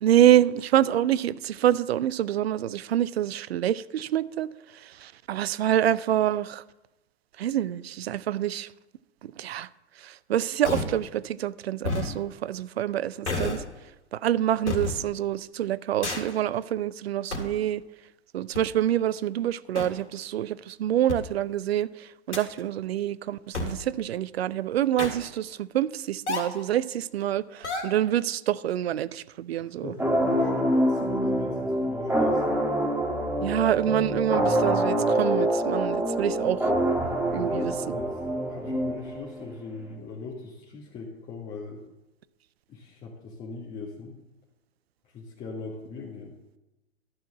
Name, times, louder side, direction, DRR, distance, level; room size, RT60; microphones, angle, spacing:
voice 1, 0.0-6.6 7.4-8.7 9.2-9.7 10.0-13.6 14.1-17.8 18.3-29.9 33.4-36.7 37.3-38.0, right 11 dB, 65° right, 0.5 m, -26 dB
sound 1, 10.6-11.0 11.8-12.1 13.3-13.7 14.7-15.0 16.0-16.4 17.3-17.6 18.5-18.6 19.7-19.8 21.1-21.2 22.3-22.6 23.5-23.8 25.0-25.3 26.3-26.6 27.6-28.0, left 3 dB, 85° left, 2.3 m, -29 dB
voice 2, 29.6-32.6 37.2-38.1 38.5-41.8 42.7-44.1 45.1-46.3, left 4 dB, 25° left, 1.5 m, -40 dB
sound 2, 30.0-39.4, right 1 dB, 5° right, 1.5 m, -26 dB
11.5 x 4.6 x 7.3 m
figure-of-eight pair, 110°, 33 cm